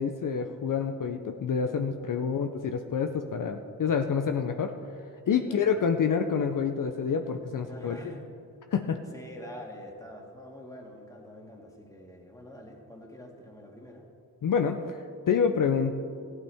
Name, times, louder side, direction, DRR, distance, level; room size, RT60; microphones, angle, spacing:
voice 1, 0.0-4.7 5.3-8.0 8.7-9.0 14.4-16.0, left 6 dB, 65° left, 6 dB, 0.6 m, -27 dB
voice 2, 5.3-6.1 7.7-8.3 9.1-14.1, equal, 10° left, 0 dB, 2.1 m, -46 dB
14.5 x 11.5 x 3.5 m, 2.5 s
cardioid pair, 65°, 34 cm